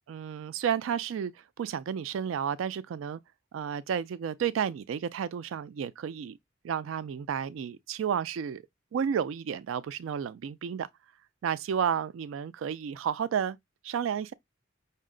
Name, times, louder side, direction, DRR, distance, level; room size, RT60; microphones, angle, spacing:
voice 1, 0.1-1.3 1.6-3.2 3.5-6.4 6.6-8.6 8.9-10.9 11.4-13.6 13.8-14.3, right 8 dB, 90° right, 0.3 m, -31 dB
5.4 x 2.0 x 3.7 m
head